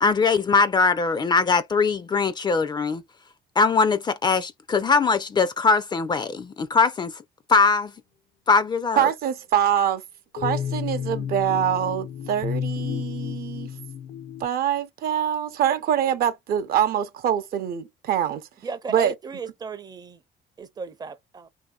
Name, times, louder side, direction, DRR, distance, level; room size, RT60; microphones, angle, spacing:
voice 1, 0.0-3.0 3.6-7.1 7.5-7.9 8.5-9.1, left 4 dB, 25° left, 0.4 m, -21 dB
voice 2, 9.0-10.0 10.3-13.7 14.4-18.5 18.9-19.1, right 9 dB, 65° right, 0.6 m, -24 dB
sound 1, 10.4-14.5, left 8 dB, 75° left, 0.6 m, -31 dB
voice 3, 18.6-20.2 20.6-21.5, right 4 dB, 25° right, 0.5 m, -35 dB
3.0 x 2.7 x 2.3 m
cardioid pair, 110°, 17 cm